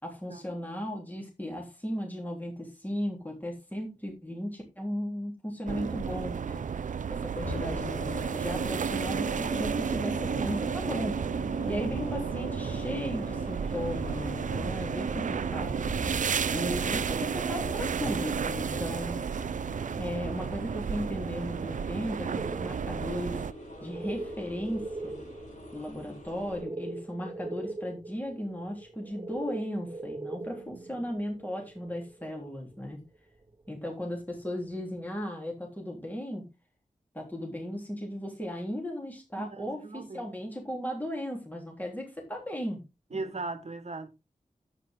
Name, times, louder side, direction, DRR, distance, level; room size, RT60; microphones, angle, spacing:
voice 1, 0.0-6.6 7.1-11.2 11.7-15.9 16.5-19.2 20.0-23.5 23.8-25.2 25.7-33.0 33.7-36.5 37.1-42.8 43.1-43.4, equal, 15° left, 3.5 m, -36 dB
sound 1, 5.7-23.5, right 6 dB, 70° right, 0.5 m, -32 dB
sound 2, 7.4-26.6, left 1 dB, 70° left, 6.5 m, -42 dB
voice 2, 11.4-11.9 16.3-16.7 30.4-31.0 39.4-40.4 43.1-44.1, right 3 dB, 55° right, 1.5 m, -41 dB
sound 3, 22.4-32.9 33.2-33.3 33.5-33.7 34.1-34.4, right 2 dB, 30° right, 2.1 m, -42 dB
9.8 x 8.7 x 3.8 m
wide cardioid pair, 70°, 13 cm